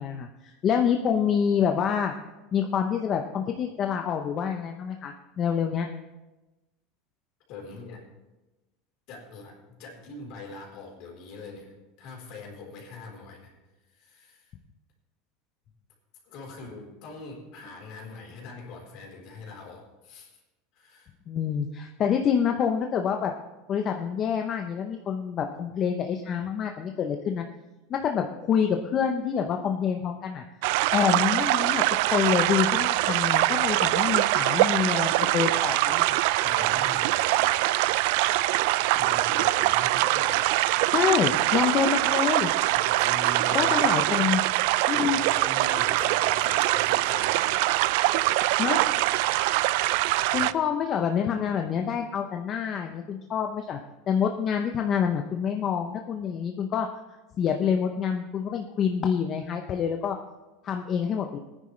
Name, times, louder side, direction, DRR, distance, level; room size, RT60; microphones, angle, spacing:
voice 1, 0.0-2.1 2.5-5.9 21.3-23.3 23.7-27.4 27.9-30.4 30.9-31.8 32.1-36.2 40.9-42.5 43.5-44.4 44.9-45.2 48.6-48.9 50.3-53.8 54.1-56.9 57.4-60.2 60.6-61.4, left 7 dB, 35° left, 4 dB, 0.7 m, -27 dB
voice 2, 7.5-8.1 9.1-13.5 13.9-14.5 16.2-20.3 20.7-21.1 36.4-37.6 38.3-38.4 39.0-40.5 42.7-44.1 44.9-47.4 50.3-50.5, left 3 dB, 55° left, 0 dB, 3.7 m, -42 dB
sound 1, 30.6-50.5, right 17 dB, 70° right, 0.3 m, -23 dB
18.5 x 9.9 x 3.2 m, 1.1 s
supercardioid pair, 145°, 0 cm